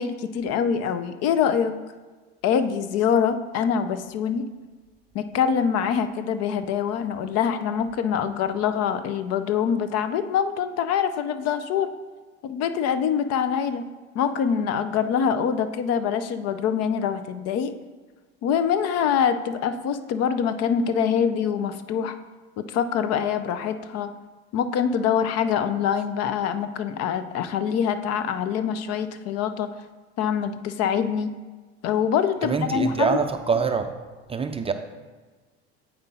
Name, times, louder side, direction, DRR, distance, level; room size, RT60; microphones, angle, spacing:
voice 1, 0.0-1.8 2.4-4.5 5.1-11.9 12.4-13.8 14.1-17.7 18.4-22.2 22.6-24.1 24.5-29.7 30.2-31.3 31.8-33.2, left 7 dB, 50° left, 11 dB, 0.6 m, -24 dB
voice 2, 32.4-33.9 34.3-34.7, right 5 dB, 20° right, 7 dB, 0.4 m, -24 dB
8.0 x 5.1 x 4.2 m, 1.3 s
hypercardioid pair, 85°, 33 cm